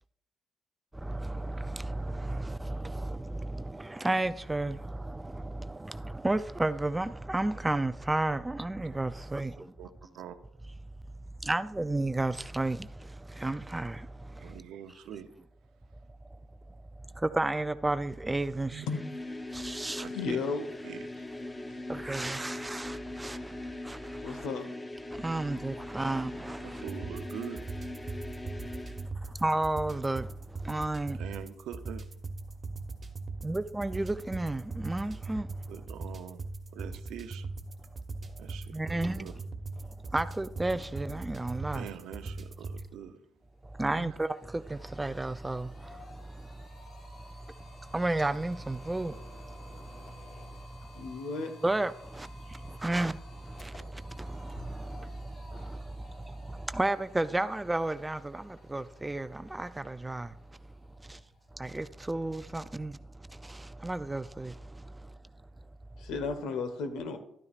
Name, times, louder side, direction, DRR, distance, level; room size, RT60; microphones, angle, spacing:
voice 1, 0.9-9.7 11.4-14.6 16.7-18.9 19.5-20.1 21.9-24.5 25.1-26.8 29.2-31.2 33.4-35.7 38.3-38.4 38.7-39.3 39.8-41.9 43.6-51.0 51.6-60.6 61.0-61.2 61.5-65.2, right 2 dB, 15° right, 0.4 m, -33 dB
voice 2, 14.4-15.3 18.7-18.9 19.9-20.4 20.8-21.1 21.5-21.6 26.6-27.6 31.2-32.0 35.7-36.4 36.7-37.5 38.4-39.3 41.7-43.2 44.0-44.1, right 9 dB, 85° right, 0.7 m, -43 dB
sound 1, 18.8-29.1, left 2 dB, 20° left, 0.8 m, -41 dB
voice 3, 20.1-20.7 24.2-24.7 50.9-51.5 66.0-67.2, left 4 dB, 90° left, 1.2 m, -34 dB
sound 2, 26.8-42.9, right 3 dB, 35° right, 1.2 m, -40 dB
sound 3, 43.2-43.3 43.6-62.6, left 1 dB, 60° left, 3.9 m, -53 dB
12.0 x 9.6 x 2.4 m
cardioid pair, 90°, 0 cm